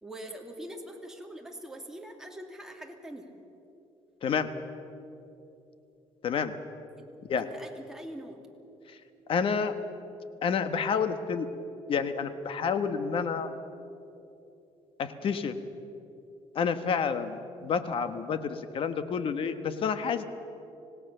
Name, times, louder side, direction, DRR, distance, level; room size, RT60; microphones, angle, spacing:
voice 1, 0.0-3.3 7.0-7.1 7.4-8.4, right 1 dB, 5° right, 1 dB, 2.5 m, -43 dB
voice 2, 9.3-9.7 10.4-11.5 11.9-13.5 15.0-15.5 16.5-20.2, left 6 dB, 50° left, 10 dB, 1.4 m, -29 dB
25.5 x 18.0 x 6.8 m, 2.8 s
cardioid pair, 120°, 11 cm